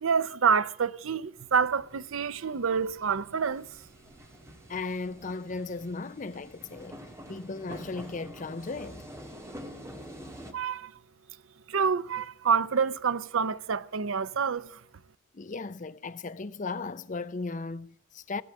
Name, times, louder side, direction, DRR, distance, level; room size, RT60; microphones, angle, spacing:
voice 1, 0.0-3.7 10.5-10.9 11.7-14.8, right 6 dB, 75° right, 0.6 m, -27 dB
sound 1, 1.4-10.5, equal, 15° right, 2.0 m, -47 dB
voice 2, 4.7-7.0 7.3-9.1 15.3-18.4, left 3 dB, 35° left, 0.6 m, -36 dB
17.5 x 7.9 x 8.5 m
head